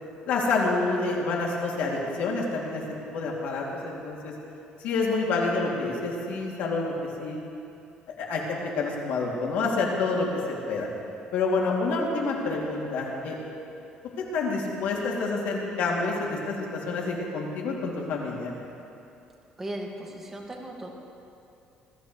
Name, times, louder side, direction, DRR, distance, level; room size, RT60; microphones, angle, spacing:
voice 1, 0.3-2.8 3.1-4.3 4.8-6.9 7.2-7.4 8.2-10.3 10.7-10.9 11.3-13.4 14.2-18.5, left 3 dB, 75° left, -2 dB, 2.8 m, -28 dB
voice 2, 19.6-20.9, right 1 dB, 15° right, -1 dB, 2.0 m, -37 dB
21.0 x 14.0 x 3.3 m, 2.7 s
cardioid pair, 130°, 3 cm